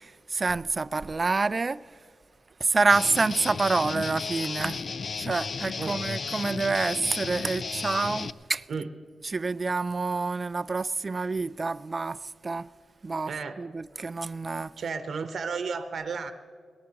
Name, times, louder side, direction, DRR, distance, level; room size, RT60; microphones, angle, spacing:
voice 1, 0.0-1.8 2.6-4.8 5.2-8.6 9.3-12.7 13.0-13.3 13.6-14.7, right 3 dB, 30° right, 0.3 m, -27 dB
Guitar, 2.9-8.3, left 5 dB, 50° left, 0.4 m, -34 dB
voice 2, 13.3-13.6 14.8-16.3, right 5 dB, 65° right, 0.8 m, -33 dB
22.0 x 18.5 x 2.9 m
wide cardioid pair, 110°, 0 cm